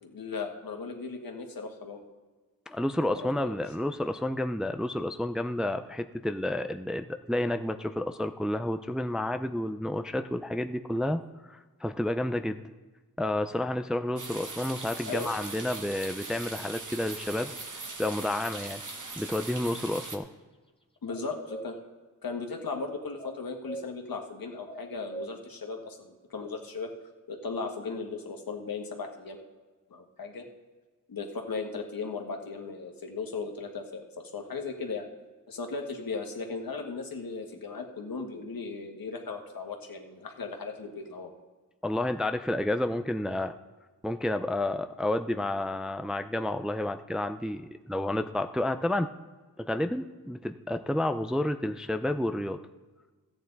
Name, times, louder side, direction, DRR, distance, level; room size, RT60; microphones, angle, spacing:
voice 1, 0.0-2.0 3.1-3.5 15.1-15.3 21.0-21.8 22.2-26.9 27.3-29.4 29.9-30.5 31.1-35.1 35.5-41.3, left 4 dB, 70° left, 3 dB, 1.6 m, -37 dB
voice 2, 2.7-11.2 11.5-12.6 13.2-17.5 18.0-18.8 19.2-20.3 41.8-43.5 44.0-49.1 49.6-52.6, left 1 dB, ahead, 8 dB, 0.4 m, -30 dB
sound 1, 14.2-20.2, right 3 dB, 55° right, 1.3 m, -40 dB
sound 2, 21.1-21.7 23.2-23.9 24.7-25.3, right 2 dB, 15° left, 0.9 m, -40 dB
14.0 x 8.8 x 4.0 m, 1.3 s
cardioid pair, 55°, 36 cm